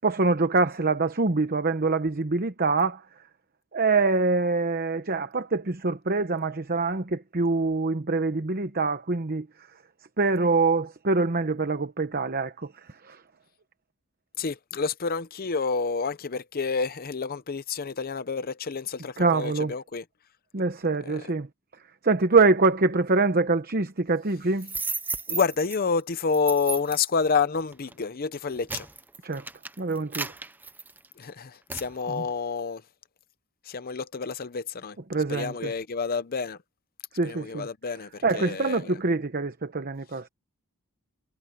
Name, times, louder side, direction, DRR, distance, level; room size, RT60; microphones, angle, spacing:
voice 1, 0.0-3.0 3.7-9.5 10.2-12.7 13.0-13.2 19.2-19.7 20.5-21.5 22.0-24.7 29.2-29.4 29.8-30.3 32.2-32.3 35.1-35.7 37.1-37.7 38.2-40.3, right 3 dB, 45° right, 1.0 m, -24 dB
voice 2, 14.4-20.0 21.0-21.3 25.3-28.9 31.2-32.8 33.6-35.0 35.3-36.6 37.2-39.0, left 5 dB, 40° left, 0.6 m, -29 dB
sound 1, 24.6-25.8 26.3-27.1 27.7-27.9 28.4-31.2 31.7-31.9, right 4 dB, 10° right, 0.6 m, -34 dB
head